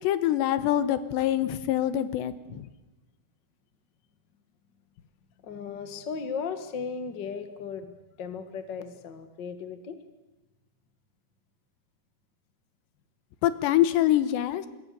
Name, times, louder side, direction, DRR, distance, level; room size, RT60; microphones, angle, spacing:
voice 1, 0.0-2.7 13.4-14.7, left 12 dB, 80° left, 13 dB, 3.3 m, -25 dB
voice 2, 5.4-10.0, left 5 dB, 50° left, 9 dB, 1.2 m, -36 dB
26.5 x 22.0 x 6.9 m, 1.0 s
omnidirectional pair, 5.0 m